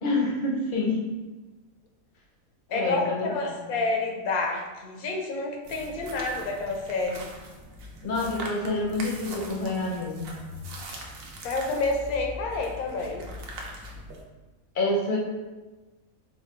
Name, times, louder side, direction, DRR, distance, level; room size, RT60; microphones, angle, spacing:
voice 1, 0.0-1.0 2.7-3.3 3.6-3.7 8.0-10.5 14.7-15.2, left 2 dB, 50° left, -2 dB, 0.7 m, -27 dB
voice 2, 2.7-7.3 10.9-11.0 11.4-13.2, left 3 dB, 90° left, 1 dB, 1.1 m, -29 dB
sound 1, 5.6-14.2, right 1 dB, 75° right, 1.0 m, -41 dB
4.1 x 2.2 x 3.1 m, 1.2 s
omnidirectional pair, 1.5 m